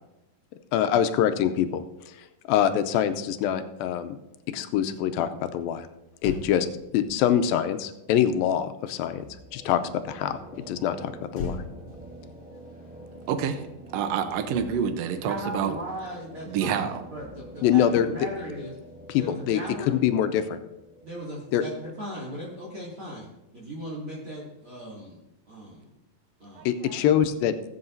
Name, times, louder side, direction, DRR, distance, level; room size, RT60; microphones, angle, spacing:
voice 1, 0.7-2.1 2.5-4.2 4.5-5.9 6.2-6.7 6.9-9.2 9.5-9.8 10.1-10.4 10.7-11.6 17.6-18.1 19.1-19.6 19.9-20.6 21.5-21.6 26.7-27.5, left 10 dB, 90° left, 10 dB, 2.4 m, -24 dB
Motor vehicle (road), 6.1-9.7 11.3-13.9 14.2-14.4, left 4 dB, 60° left, 1.8 m, -42 dB
sound 1, 9.2-22.9, right 1 dB, ahead, 3.0 m, -47 dB
voice 2, 13.3-13.6 13.9-15.7 16.5-17.0 26.6-27.0, right 7 dB, 85° right, 8 dB, 1.4 m, -28 dB
voice 3, 15.2-18.7 19.1-20.0 21.0-25.2 25.5-25.9 26.4-26.7, equal, 40° right, -6 dB, 3.0 m, -37 dB
20.5 x 7.8 x 2.7 m, 0.92 s
omnidirectional pair, 4.1 m